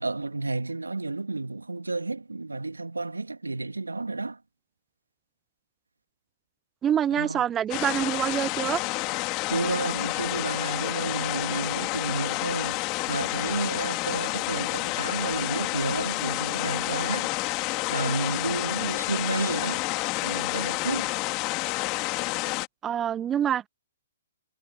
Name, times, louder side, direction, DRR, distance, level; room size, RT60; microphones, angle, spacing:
voice 1, 0.0-4.4 7.1-7.5 9.5-17.6 17.9-19.8 20.2-21.1, right 3 dB, 85° right, 2.7 m, -31 dB
voice 2, 6.8-8.8 22.8-23.7, right 9 dB, 15° right, 0.5 m, -26 dB
sound 1, 7.7-22.7, left 25 dB, 30° left, 2.2 m, -29 dB
figure-of-eight pair, 125°, 0 cm